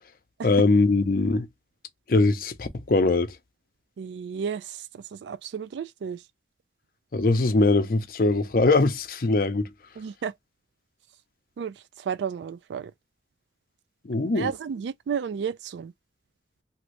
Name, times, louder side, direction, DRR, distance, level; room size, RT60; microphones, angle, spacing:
voice 1, 0.4-1.5 2.1-3.3 7.1-9.7 14.0-14.5, left 3 dB, 55° left, 0.6 m, -21 dB
voice 2, 4.0-6.2 10.0-10.3 11.6-12.9 14.3-15.9, right 7 dB, 75° right, 0.3 m, -33 dB
2.7 x 2.6 x 3.1 m
head